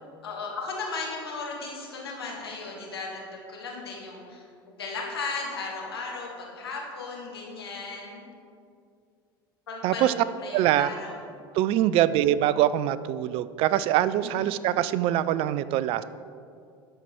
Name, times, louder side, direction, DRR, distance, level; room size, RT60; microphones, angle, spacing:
voice 1, 0.2-8.3 9.7-10.1 10.4-11.2 14.2-14.5, left 3 dB, 80° left, -2 dB, 1.6 m, -36 dB
voice 2, 9.8-10.1 10.5-10.9 11.5-16.0, right 12 dB, 50° right, 15 dB, 0.3 m, -23 dB
12.5 x 4.5 x 4.4 m, 2.3 s
figure-of-eight pair, 70°, 13 cm